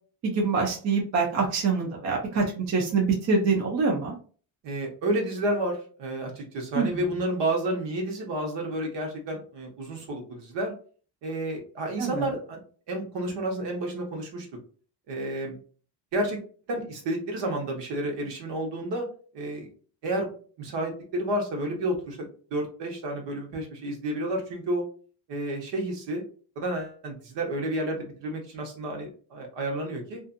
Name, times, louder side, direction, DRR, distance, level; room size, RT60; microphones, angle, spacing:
voice 1, 0.2-4.1 6.7-7.0 12.0-12.3, right 4 dB, 40° right, 0 dB, 0.6 m, -25 dB
voice 2, 4.6-10.7 11.2-12.6 12.9-14.5 15.1-15.5 16.1-16.4 16.7-19.1 19.3-19.7 20.0-24.8 25.3-26.2 26.6-30.2, right 1 dB, 70° right, 1 dB, 1.1 m, -30 dB
2.6 x 2.5 x 2.5 m, 0.41 s
cardioid pair, 155°, 44 cm